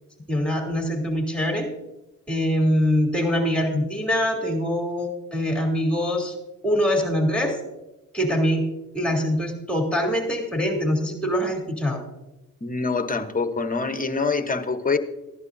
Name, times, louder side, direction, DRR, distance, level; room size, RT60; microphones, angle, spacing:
voice 1, 0.3-1.7 2.3-6.3 6.6-7.6 8.1-8.7 8.9-12.0, equal, 5° left, 1 dB, 3.2 m, -23 dB
voice 2, 12.6-15.0, left 4 dB, 25° left, 9 dB, 1.1 m, -25 dB
15.5 x 11.0 x 2.7 m, 0.99 s
cardioid pair, 65°, 34 cm